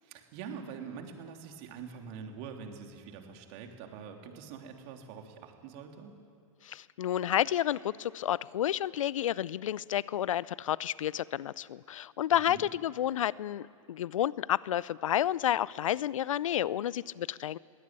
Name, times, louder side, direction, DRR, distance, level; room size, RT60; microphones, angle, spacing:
voice 1, 0.0-6.1 12.5-12.6, right 6 dB, 50° right, 3 dB, 3.3 m, -44 dB
voice 2, 6.6-17.6, left 11 dB, 75° left, 21 dB, 0.6 m, -30 dB
22.0 x 17.5 x 9.0 m, 2.3 s
hypercardioid pair, 115°, 17 cm